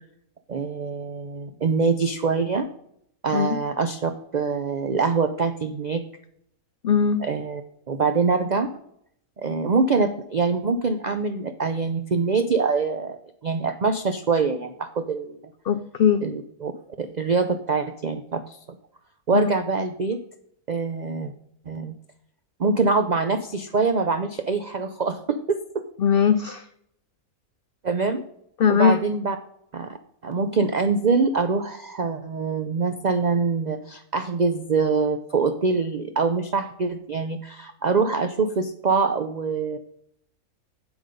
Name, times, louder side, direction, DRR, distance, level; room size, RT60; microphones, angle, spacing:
voice 1, 0.5-2.7 3.2-6.0 7.2-7.6 7.9-8.7 9.4-15.5 16.2-16.7 17.0-18.6 19.3-20.2 20.7-21.3 21.7-22.0 22.6-25.8 27.8-28.2 28.7-29.4 29.7-30.0 30.2-39.8, right 4 dB, 85° right, 8 dB, 0.3 m, -24 dB
voice 2, 6.8-7.2 15.6-16.3 19.3-19.5 26.0-26.7 28.6-29.0, left 7 dB, 90° left, 11 dB, 0.5 m, -20 dB
8.0 x 8.0 x 5.3 m, 0.73 s
omnidirectional pair, 1.6 m